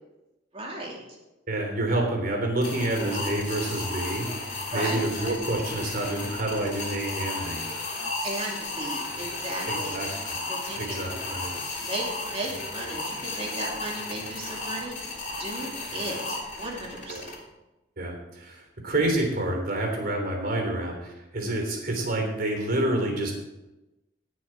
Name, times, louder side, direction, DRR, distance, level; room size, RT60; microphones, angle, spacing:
voice 1, 0.5-1.0 4.7-5.4 8.2-10.0 10.5-11.2 11.8-14.9 15.4-17.4, right 1 dB, 35° right, -2 dB, 2.6 m, -35 dB
voice 2, 1.5-4.3 4.7-7.6 9.7-10.4 10.8-11.5 17.1-17.2 18.0-23.3, right 1 dB, 55° right, 2 dB, 3.4 m, -28 dB
sound 1, 2.6-17.4, left 2 dB, 45° left, 3.6 m, -34 dB
18.5 x 6.4 x 4.7 m, 1.0 s
head